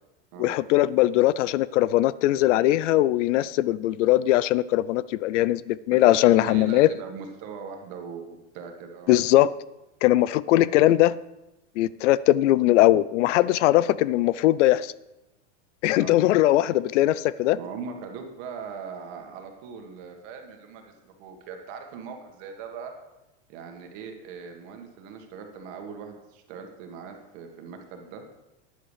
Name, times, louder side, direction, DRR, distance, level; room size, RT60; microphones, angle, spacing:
voice 1, 0.4-6.9 9.1-9.5 10.0-11.2 11.8-14.9 15.8-17.6, left 15 dB, 75° left, 19 dB, 0.5 m, -20 dB
voice 2, 6.0-9.2 10.6-10.8 16.0-16.1 17.5-22.9 23.5-28.2, right 6 dB, 45° right, 4 dB, 1.8 m, -40 dB
12.5 x 10.0 x 3.3 m, 0.95 s
supercardioid pair, 150°, 37 cm